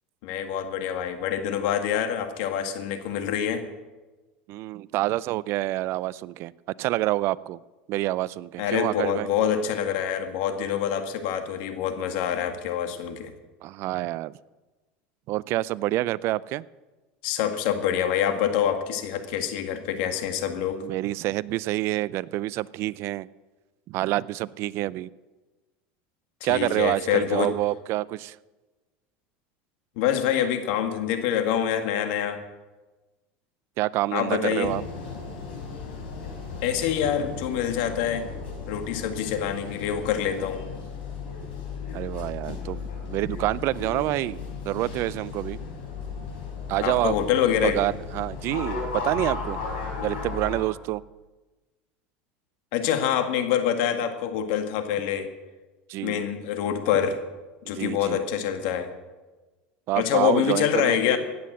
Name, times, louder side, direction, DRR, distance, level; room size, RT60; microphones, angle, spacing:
voice 1, 0.2-3.6 8.6-13.3 17.2-20.8 26.5-27.5 30.0-32.4 34.1-34.7 36.6-38.3 38.7-40.6 46.8-47.8 52.7-55.3 56.0-57.2 57.7-58.9 60.0-61.2, left 9 dB, 70° left, 8 dB, 1.8 m, -26 dB
voice 2, 4.5-6.5 6.8-7.6 7.9-9.3 13.6-14.3 15.3-16.6 20.8-23.3 23.9-25.1 26.4-28.4 33.8-34.8 41.9-45.6 46.7-47.1 47.6-49.6 50.0-51.0 55.9-56.2 57.7-58.2 59.9-61.0, right 17 dB, 55° right, 20 dB, 0.5 m, -27 dB
sound 1, 34.6-50.6, left 5 dB, 85° left, 6.0 m, -35 dB
15.5 x 9.5 x 7.8 m, 1.2 s
supercardioid pair, 115°, 5 cm